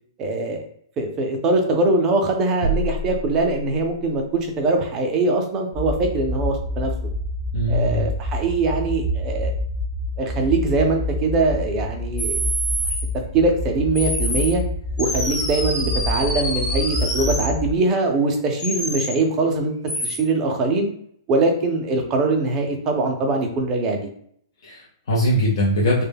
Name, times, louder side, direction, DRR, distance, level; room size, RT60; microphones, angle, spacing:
voice 1, 0.2-0.6 1.0-7.1 7.7-9.5 10.2-12.4 13.3-14.6 15.0-19.7 20.0-20.9 21.3-24.0, right 3 dB, 20° right, 2 dB, 0.4 m, -22 dB
sound 1, 2.6-4.2, right 1 dB, 70° right, 0.6 m, -27 dB
sound 2, 5.7-17.7, left 1 dB, 10° left, 0.7 m, -27 dB
voice 2, 7.5-8.1 24.6-26.0, equal, 65° left, -4 dB, 0.6 m, -21 dB
sound 3, 12.2-13.0 13.9-14.5 15.0-17.5 18.6-19.1 19.9-20.2, equal, 25° left, 1.1 m, -26 dB
2.1 x 2.1 x 3.3 m, 0.67 s
hypercardioid pair, 165°, 3 cm